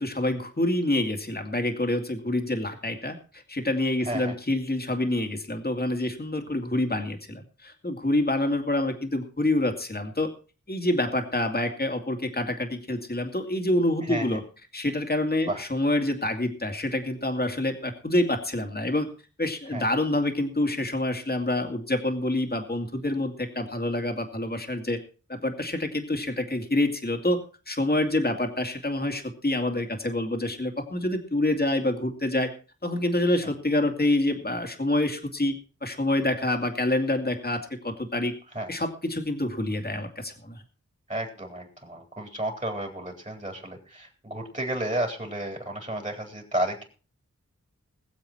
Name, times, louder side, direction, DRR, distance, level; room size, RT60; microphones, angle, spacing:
voice 1, 0.0-10.3 10.7-14.4 14.7-19.1 19.4-25.0 25.3-27.4 27.7-32.5 32.8-35.5 35.8-38.3 38.7-40.6, left 1 dB, 35° left, 5 dB, 2.3 m, -27 dB
voice 2, 14.1-14.4 15.5-15.6 19.7-19.9 33.4-33.5 38.5-38.7 41.1-46.8, right 1 dB, 25° right, 3 dB, 3.8 m, -32 dB
21.0 x 7.6 x 4.3 m, 0.36 s
wide cardioid pair, 60°, 29 cm